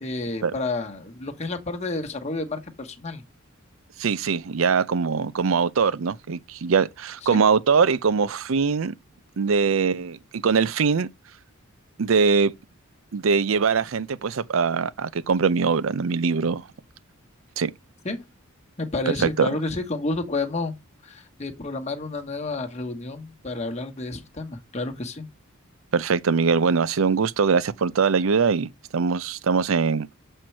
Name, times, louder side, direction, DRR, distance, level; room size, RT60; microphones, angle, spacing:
voice 1, 0.0-3.2 7.3-7.4 18.0-18.2 18.8-20.7 21.0-25.2, left 2 dB, 30° left, 1.2 m, -30 dB
voice 2, 4.0-8.9 9.4-11.1 12.0-12.5 13.1-16.7 17.6-17.7 19.1-19.5 25.9-30.1, right 5 dB, 70° right, 0.5 m, -22 dB
7.6 x 4.4 x 4.5 m
head